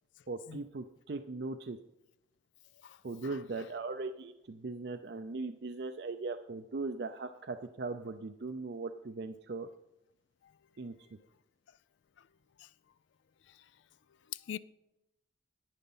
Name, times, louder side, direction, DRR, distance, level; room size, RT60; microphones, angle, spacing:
voice 1, 0.3-1.8 3.0-9.7 10.8-10.9, right 3 dB, 65° right, 0.5 m, -39 dB
voice 2, 2.8-3.4 10.4-10.6 11.7-11.8 12.2-12.3 12.6-12.7 13.5-13.7 14.3-14.6, left 10 dB, 80° left, 0.4 m, -45 dB
11.0 x 8.9 x 5.5 m
head